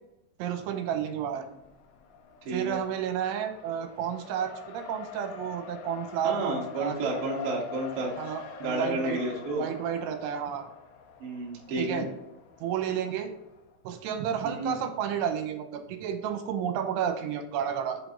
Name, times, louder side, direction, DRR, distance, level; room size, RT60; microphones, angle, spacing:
voice 1, 0.4-1.5 2.5-7.0 8.2-9.2 9.6-10.7 11.8-12.1 12.6-13.3 13.8-18.0, right 9 dB, 85° right, 6 dB, 3.1 m, -31 dB
Race car auto racing, 1.1-13.8, left 6 dB, 80° left, 2.3 m, -44 dB
voice 2, 2.5-2.8 6.2-8.1 8.6-9.6 11.2-12.0 14.4-14.7, right 2 dB, 50° right, -3 dB, 1.8 m, -31 dB
7.7 x 5.1 x 3.8 m, 0.88 s
omnidirectional pair, 5.4 m